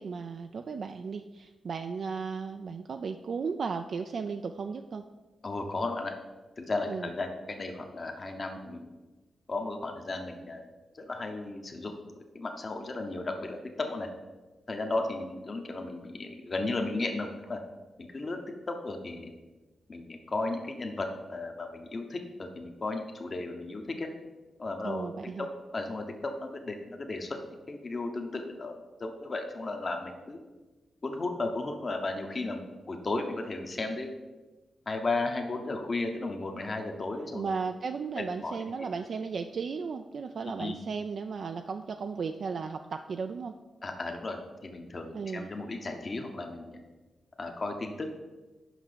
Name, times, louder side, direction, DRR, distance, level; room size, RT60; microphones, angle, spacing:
voice 1, 0.0-5.0 6.9-7.1 24.8-25.5 37.3-43.5 45.1-45.5, right 5 dB, 60° right, 6 dB, 0.3 m, -35 dB
voice 2, 5.4-6.2 6.6-8.9 9.5-10.6 10.9-11.9 12.3-14.1 14.7-17.6 18.1-18.4 18.7-19.3 19.9-24.1 24.6-25.1 25.4-27.4 27.7-30.4 31.0-34.1 34.9-37.5 38.2-38.6 40.6-40.8 43.8-46.8 47.4-48.1, left 2 dB, 40° left, 4 dB, 1.0 m, -34 dB
5.9 x 5.4 x 6.7 m, 1.2 s
cardioid pair, 95°, 0 cm